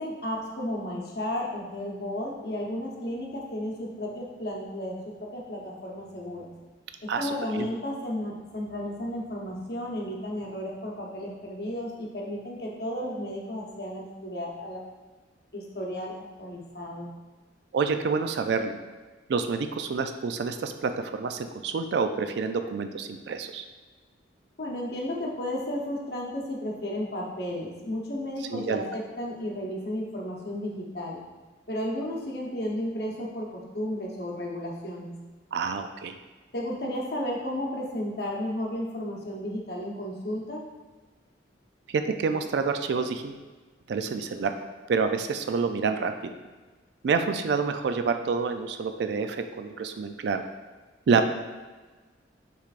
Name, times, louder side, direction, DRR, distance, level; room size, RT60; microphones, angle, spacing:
voice 1, 0.0-5.0 5.3-6.5 7.0-14.8 15.5-17.1 24.6-31.2 31.7-35.1 36.5-40.6, left 1 dB, 55° left, -2 dB, 0.9 m, -33 dB
voice 2, 7.1-7.7 17.7-18.7 19.3-23.6 28.5-28.8 35.5-36.2 41.9-43.4 43.9-44.5 44.9-46.3 47.0-50.4 51.1-51.3, right 5 dB, 65° right, 8 dB, 0.3 m, -28 dB
6.7 x 3.2 x 2.4 m, 1.3 s
head